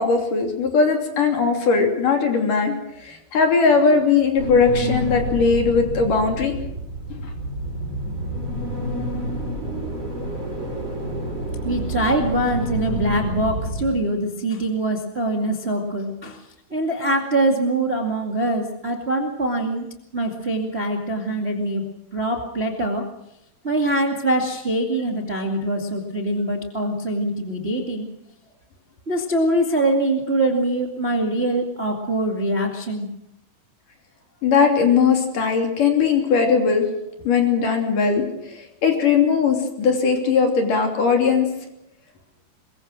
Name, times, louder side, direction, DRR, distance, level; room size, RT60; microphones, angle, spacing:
voice 1, 0.0-6.5 7.2-7.3 34.4-36.8 37.2-41.5, left 5 dB, 55° left, 3 dB, 4.5 m, -19 dB
sound 1, 4.4-13.9, right 1 dB, 40° right, 7.9 m, -28 dB
voice 2, 11.6-16.4 16.7-19.9 20.1-21.8 22.1-23.0 23.6-28.1 29.1-33.1, right 1 dB, 20° right, 1 dB, 1.6 m, -23 dB
22.5 x 22.5 x 6.3 m, 0.83 s
omnidirectional pair, 4.6 m